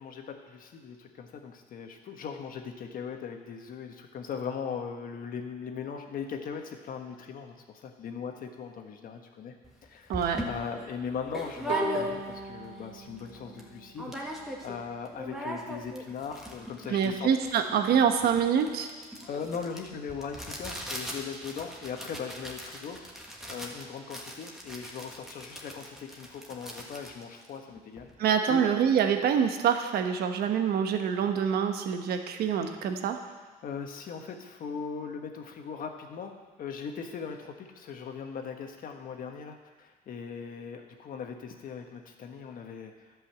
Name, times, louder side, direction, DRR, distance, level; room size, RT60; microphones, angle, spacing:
voice 1, 0.0-9.5 9.9-14.4 14.6-17.3 19.3-23.0 23.5-28.1 28.5-28.7 33.6-36.3 36.6-42.9, left 6 dB, 55° left, 4 dB, 1.4 m, -39 dB
sound 1, 9.6-9.7 10.1-12.5 12.9-13.0 13.2-13.7 14.0-14.8 15.0-28.1, equal, ahead, 1.6 m, -39 dB
voice 2, 10.1-10.4 16.9-18.9 28.2-33.2, right 7 dB, 70° right, 6 dB, 1.1 m, -26 dB
Bowed string instrument, 11.7-14.8, right 1 dB, 50° right, 2.4 m, -37 dB
11.5 x 5.5 x 7.6 m, 1.4 s
cardioid pair, 110°, 17 cm